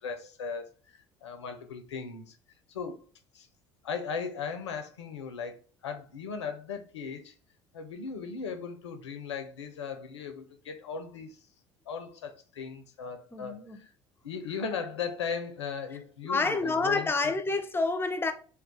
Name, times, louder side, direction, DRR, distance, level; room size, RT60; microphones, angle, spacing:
voice 1, 0.0-2.4 2.7-3.0 3.3-3.5 3.8-7.3 7.7-11.4 11.9-13.9 14.2-17.3, left 6 dB, 80° left, 0.5 m, -37 dB
voice 2, 13.3-13.8 16.2-18.3, left 3 dB, 15° left, 0.5 m, -28 dB
2.3 x 2.3 x 3.7 m
figure-of-eight pair, 65°, 14 cm